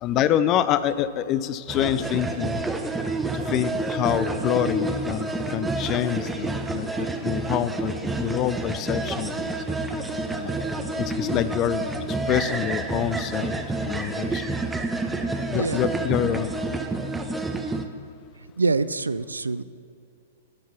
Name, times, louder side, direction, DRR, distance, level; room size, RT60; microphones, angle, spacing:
voice 1, 0.0-2.6 3.3-9.4 10.3-10.5 11.2-11.8 12.3-13.5 13.8-14.6 15.5-16.5, left 10 dB, 35° left, 15 dB, 0.4 m, -26 dB
sound 1, 1.7-17.8, right 2 dB, 5° right, 0.6 m, -29 dB
voice 2, 15.5-15.8 18.6-19.6, right 3 dB, 85° right, 15 dB, 0.3 m, -25 dB
11.5 x 4.6 x 7.0 m, 2.4 s
figure-of-eight pair, 110°, 0 cm